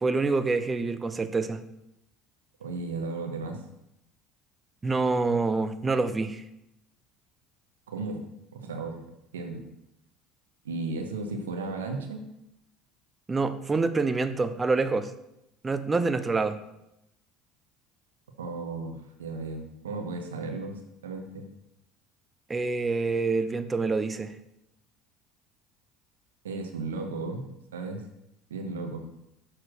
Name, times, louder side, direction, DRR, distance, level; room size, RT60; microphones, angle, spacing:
voice 1, 0.0-1.6 4.8-6.4 13.3-15.1 15.6-16.6 22.5-24.3, right 3 dB, 20° right, 10 dB, 0.7 m, -26 dB
voice 2, 2.6-3.6 7.9-8.3 8.5-9.0 9.3-9.7 10.6-12.2 18.4-21.5 26.4-27.5 27.7-28.0 28.5-29.1, right 3 dB, 85° right, 3 dB, 0.9 m, -35 dB
6.6 x 4.4 x 6.1 m, 0.85 s
hypercardioid pair, 70°, 0 cm